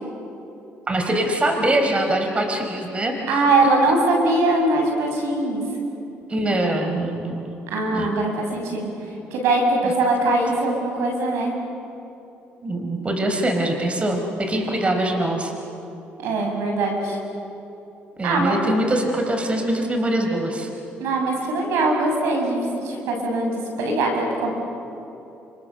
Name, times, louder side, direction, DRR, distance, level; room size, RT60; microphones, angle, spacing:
voice 1, 0.9-3.4 6.3-7.6 7.9-8.1 9.8-9.9 12.6-15.5 18.2-20.7, right 1 dB, 25° right, 3 dB, 4.5 m, -23 dB
voice 2, 3.3-5.6 7.7-11.5 16.2-17.2 18.2-18.6 21.0-24.5, right 2 dB, 80° right, 2 dB, 6.8 m, -22 dB
29.5 x 27.5 x 7.0 m, 2.9 s
cardioid pair, 80°, 5 cm